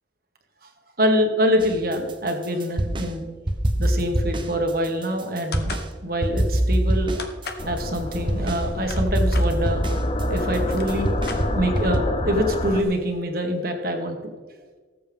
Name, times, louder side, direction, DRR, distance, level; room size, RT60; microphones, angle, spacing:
voice 1, 1.0-3.3 3.8-5.7 6.0-7.3 7.7-9.8 10.3-11.3 11.5-14.2, equal, 50° right, 4 dB, 1.7 m, -25 dB
sound 1, 1.6-3.1 3.5-5.9 6.2-12.0, right 1 dB, 25° right, 1.0 m, -24 dB
sound 2, 5.5-5.9 7.2-7.7 8.6-9.5 10.3-10.4 10.6-11.8, left 4 dB, 55° left, 1.2 m, -36 dB
sound 3, 7.6-12.8, left 1 dB, 30° left, 0.9 m, -28 dB
19.0 x 7.8 x 3.6 m, 1.4 s
head